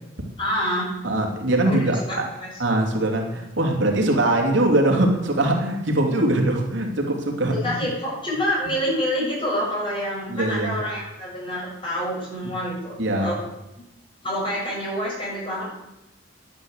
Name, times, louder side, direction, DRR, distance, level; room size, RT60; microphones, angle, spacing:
voice 1, 0.4-0.9 1.6-1.8 2.1-2.5 7.5-13.4 14.2-15.7, equal, 25° left, -5 dB, 7.5 m, -27 dB
voice 2, 1.0-2.3 2.6-7.5 10.3-10.7 13.0-13.3, right 1 dB, 70° right, 1 dB, 2.9 m, -22 dB
11.5 x 11.0 x 8.1 m, 0.93 s
head